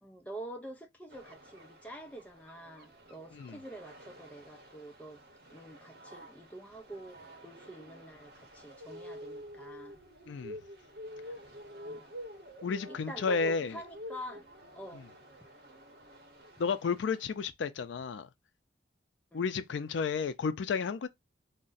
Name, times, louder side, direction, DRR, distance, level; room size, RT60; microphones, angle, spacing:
voice 1, 0.0-5.2 5.5-7.2 7.4-10.0 11.8-12.0 12.9-14.5 14.7-15.0 19.3-19.4, right 1 dB, 10° left, 0.5 m, -46 dB
sound 1, 1.1-17.2, equal, 55° right, 0.8 m, -49 dB
voice 2, 10.3-10.6 12.6-13.8 16.6-18.3 19.3-21.1, left 5 dB, 80° left, 0.4 m, -32 dB
2.5 x 2.1 x 3.8 m
head